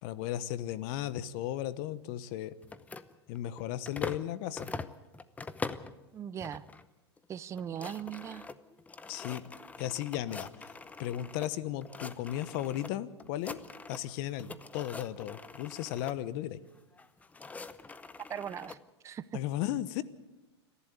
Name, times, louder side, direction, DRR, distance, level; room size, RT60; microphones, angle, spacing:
voice 1, 0.0-2.5 3.3-4.7 9.1-9.4 9.8-10.7 11.0-13.6 13.9-16.6 19.3-20.0, left 12 dB, 50° left, 17 dB, 1.1 m, -35 dB
sound 1, 2.6-4.3 4.6-6.0 6.4-6.8 7.2-7.3 7.5-11.5 11.8-12.9 13.2-14.1 14.4-16.2 17.0-18.8, left 4 dB, 10° left, 0.8 m, -43 dB
voice 2, 6.1-6.6 7.3-8.5 18.3-18.8 19.0-19.4, right 9 dB, 20° right, 15 dB, 0.6 m, -39 dB
28.5 x 11.5 x 8.4 m, 1.0 s
hypercardioid pair, 120°, 14 cm